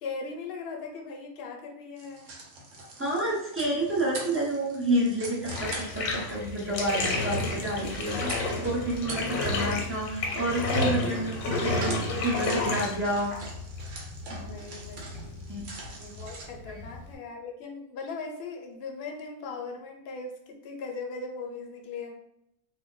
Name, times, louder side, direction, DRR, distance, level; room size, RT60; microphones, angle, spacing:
voice 1, 0.0-2.3 14.5-15.4 15.9-22.1, left 4 dB, 60° left, 1 dB, 0.6 m, -39 dB
sound 1, 2.0-16.5, right 2 dB, 70° right, 1.0 m, -43 dB
voice 2, 3.0-8.3 8.6-13.3 14.3-14.4 15.5-15.6 16.7-16.8, right 1 dB, 20° right, -6 dB, 0.3 m, -29 dB
Bathtub (filling or washing), 5.5-17.2, left 2 dB, 85° left, 1.0 m, -31 dB
2.4 x 2.1 x 3.7 m, 0.78 s
omnidirectional pair, 1.4 m